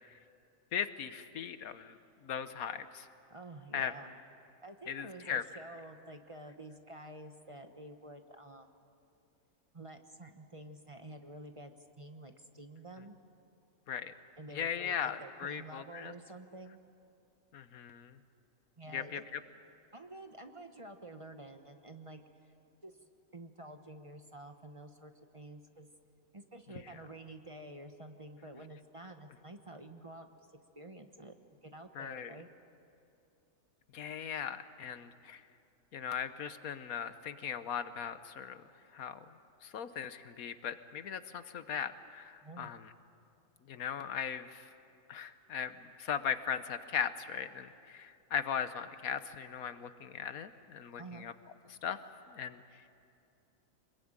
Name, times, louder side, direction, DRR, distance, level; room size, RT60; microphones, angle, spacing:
voice 1, 0.7-2.0 2.2-3.1 3.7-3.9 4.9-5.4 13.9-14.1 14.5-16.1 17.5-18.2 18.9-19.4 31.9-32.3 33.9-35.4 35.9-38.6 38.9-39.2 39.6-42.9 43.7-44.7 45.1-51.3 51.8-52.0 52.3-52.6, left 8 dB, 85° left, 11 dB, 1.4 m, -38 dB
voice 2, 3.3-4.2 4.6-8.7 9.7-13.2 14.4-16.8 18.8-19.2 19.9-22.5 22.8-23.0 23.3-25.9 26.3-30.4 30.7-31.3 31.6-32.5 42.4-42.7 51.0-51.3, right 1 dB, 25° right, 6 dB, 1.0 m, -49 dB
25.5 x 21.5 x 8.9 m, 2.6 s
omnidirectional pair, 1.5 m